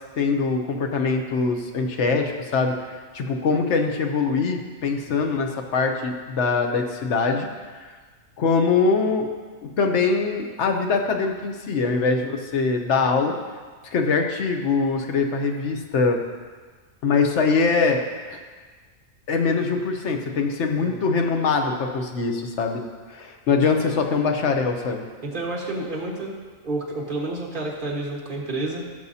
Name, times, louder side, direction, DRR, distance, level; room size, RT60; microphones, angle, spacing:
voice 1, 0.2-2.7 3.1-7.5 7.8-7.9 8.4-9.3 9.8-13.3 13.8-16.2 17.0-18.0 18.3-18.4 19.3-22.8 23.1-25.0, left 4 dB, 60° left, 4 dB, 1.1 m, -23 dB
voice 2, 20.8-21.1 23.9-24.0 25.2-26.3 26.6-29.0, right 2 dB, 40° right, -3 dB, 1.7 m, -30 dB
16.0 x 6.6 x 2.8 m, 1.5 s
omnidirectional pair, 1.4 m